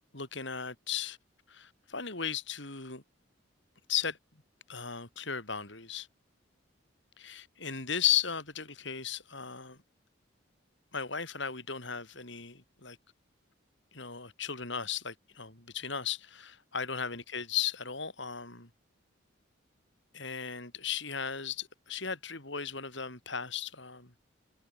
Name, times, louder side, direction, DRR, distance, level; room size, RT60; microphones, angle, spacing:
voice 1, 0.1-1.2 1.5-3.0 3.9-4.2 4.7-6.1 7.2-9.8 10.9-13.0 13.9-18.7 20.1-24.3, left 8 dB, 65° left, 5.7 m, -36 dB
head